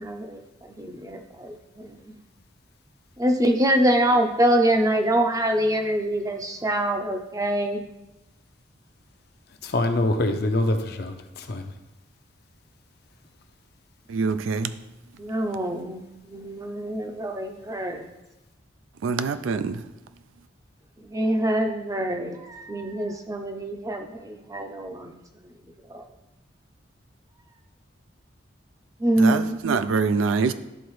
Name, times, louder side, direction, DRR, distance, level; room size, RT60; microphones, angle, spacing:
voice 1, 0.0-2.2 3.2-7.9 15.2-18.1 21.0-26.1 29.0-29.5, right 1 dB, 15° right, 0.5 m, -25 dB
voice 2, 9.6-11.7, left 2 dB, 55° left, 0.6 m, -25 dB
voice 3, 14.1-14.8 19.0-19.8 29.2-30.5, right 4 dB, 85° right, 0.4 m, -24 dB
11.0 x 3.9 x 3.1 m
head